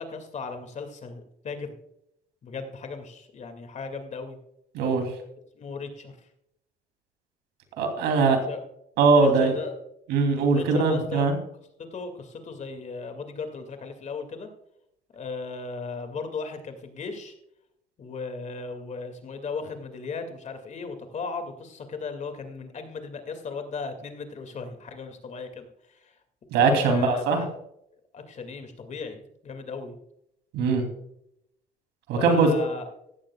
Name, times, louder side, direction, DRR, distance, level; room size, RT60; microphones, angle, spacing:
voice 1, 0.0-1.7 2.4-4.4 5.5-6.1 8.5-8.6 9.1-9.7 10.5-11.3 11.8-14.5 15.1-17.3 18.0-26.1 26.5-27.5 28.1-30.0 32.2-32.9, left 4 dB, 45° left, 6 dB, 2.2 m, -36 dB
voice 2, 4.7-5.1 7.8-8.4 9.0-9.5 10.1-11.4 26.5-27.4 30.5-30.8 32.1-32.5, right 4 dB, 90° right, 5 dB, 3.0 m, -21 dB
16.0 x 13.0 x 2.3 m, 0.77 s
cardioid pair, 110°, 17 cm